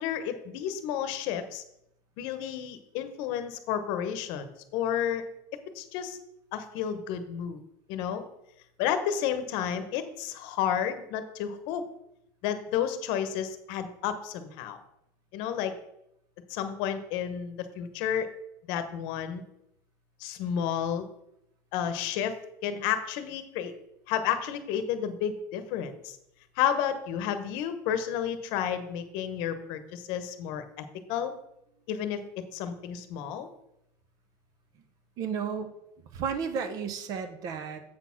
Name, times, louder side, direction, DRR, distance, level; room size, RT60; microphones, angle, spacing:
voice 1, 0.0-1.6 2.2-5.2 5.7-6.2 6.5-7.6 7.9-8.2 8.8-11.8 12.4-14.8 15.3-15.7 16.5-18.3 18.7-19.4 20.2-21.1 21.7-22.3 22.6-23.7 24.1-26.2 26.6-31.3 31.9-32.2 32.5-33.5, left 9 dB, 65° left, 9 dB, 0.9 m, -31 dB
voice 2, 35.2-35.7 36.1-37.8, right 6 dB, 45° right, 9 dB, 0.8 m, -33 dB
7.8 x 4.3 x 5.8 m, 0.81 s
cardioid pair, 170°, 8 cm